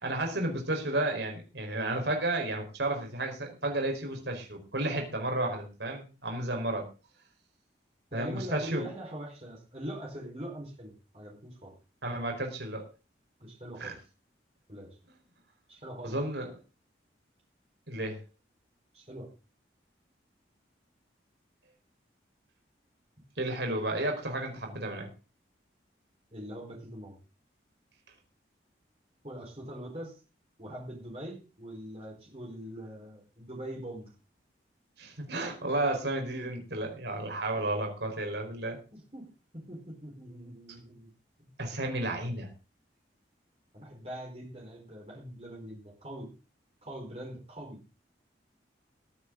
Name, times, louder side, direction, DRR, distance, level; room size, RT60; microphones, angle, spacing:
voice 1, 0.0-6.9 8.1-8.9 12.0-12.9 13.8-14.0 16.0-16.5 17.9-18.2 23.4-25.1 35.0-38.8 41.6-42.5, right 1 dB, 70° right, 3 dB, 4.7 m, -32 dB
voice 2, 8.1-11.7 13.4-13.9 14.7-14.9 15.7-16.2 18.9-19.3 26.3-27.2 29.2-30.2 30.6-34.1 38.9-41.1 41.4-41.5 43.7-46.3 46.8-47.8, right 1 dB, 35° right, -1 dB, 4.7 m, -42 dB
20.5 x 9.9 x 3.9 m, 0.33 s
head